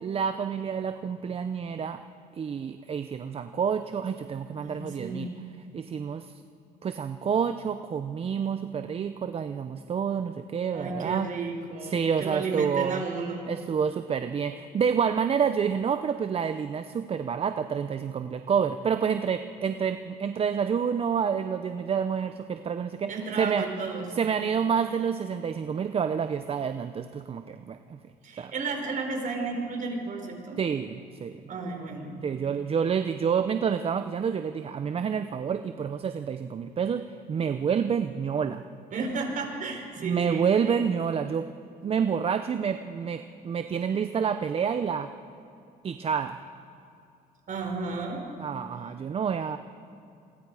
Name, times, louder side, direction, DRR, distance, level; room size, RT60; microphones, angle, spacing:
voice 1, 0.0-2.0 2.3-5.3 5.7-6.3 6.8-11.3 11.9-13.0 13.5-23.6 24.2-28.0 28.4-28.5 30.6-31.4 32.2-38.6 40.0-41.5 41.8-45.1 45.8-46.4 48.4-49.6, right 7 dB, 35° right, 9 dB, 0.7 m, -28 dB
voice 2, 4.6-5.7 10.7-13.5 13.9-14.0 23.1-24.2 28.2-30.6 31.5-32.5 38.9-40.8 45.9-46.0 47.5-48.2 48.7-48.8, right 4 dB, 50° right, 2 dB, 4.8 m, -33 dB
27.5 x 22.0 x 4.9 m, 2.7 s
cardioid pair, 110°, 17 cm